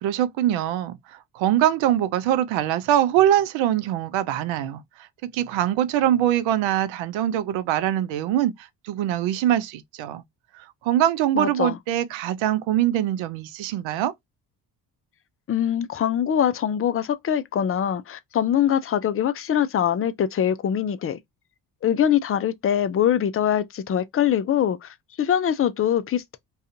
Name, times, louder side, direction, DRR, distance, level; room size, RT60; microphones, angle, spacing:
voice 1, 0.0-1.0 1.3-4.8 5.2-10.2 10.6-14.1, right 12 dB, 75° right, 0.6 m, -23 dB
voice 2, 11.3-11.8 15.5-21.2 21.8-26.4, left 9 dB, 30° left, 0.4 m, -23 dB
2.4 x 2.4 x 2.7 m
supercardioid pair, 55°, 46 cm